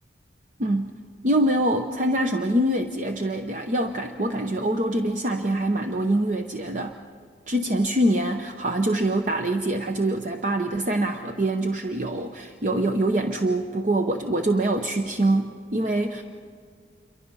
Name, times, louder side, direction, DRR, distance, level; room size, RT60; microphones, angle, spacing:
voice 1, 0.6-0.9 1.2-6.9 7.5-16.2, right 1 dB, 45° right, 5 dB, 0.8 m, -24 dB
28.0 x 23.5 x 5.6 m, 2.1 s
head